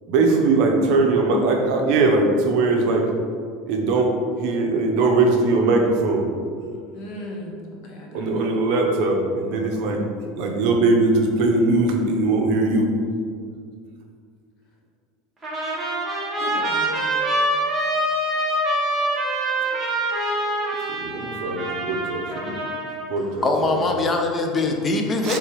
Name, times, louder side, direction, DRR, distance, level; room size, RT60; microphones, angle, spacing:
voice 1, 0.1-3.1 3.7-6.3 8.1-10.1 10.4-12.9 20.9-22.6 23.1-23.4 23.7-23.8 25.2-25.4, right 3 dB, 55° right, 2 dB, 0.6 m, -20 dB
voice 2, 6.9-8.4 16.4-17.1, left 1 dB, 45° left, 0 dB, 0.8 m, -36 dB
Trumpet, 15.4-23.1, right 1 dB, 10° right, 0.9 m, -25 dB
voice 3, 23.2-25.4, left 3 dB, 20° left, 3 dB, 0.4 m, -22 dB
3.5 x 3.3 x 4.4 m, 2.2 s
cardioid pair, 165°, 0 cm